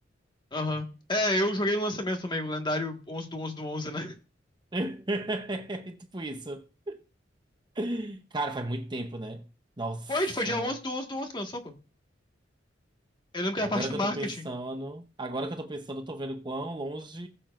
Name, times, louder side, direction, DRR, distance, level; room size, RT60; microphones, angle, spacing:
voice 1, 0.5-4.1 10.1-11.7 13.3-14.4, left 1 dB, 25° left, 1.6 m, -30 dB
voice 2, 4.7-7.0 7.7-9.4 9.8-10.1 10.5-10.7 13.6-17.3, right 1 dB, 25° right, 0.9 m, -34 dB
19.5 x 7.4 x 2.5 m
head